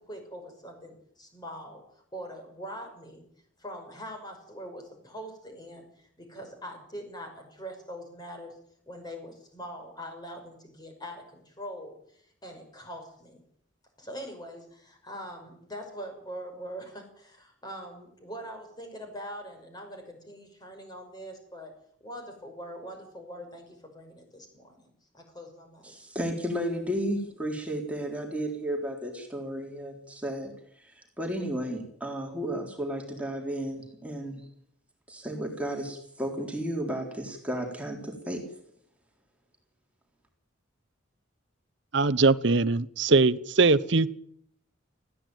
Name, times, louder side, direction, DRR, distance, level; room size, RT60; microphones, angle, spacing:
voice 1, 0.0-1.8 2.1-3.2 3.6-8.6 8.9-13.4 14.0-21.7 22.0-25.9, equal, 20° left, 4 dB, 5.8 m, -43 dB
voice 2, 25.8-34.4 35.1-38.4, equal, 5° right, 1 dB, 3.8 m, -33 dB
voice 3, 41.9-44.1, right 3 dB, 60° right, 17 dB, 0.9 m, -21 dB
19.5 x 15.5 x 9.2 m, 0.67 s
head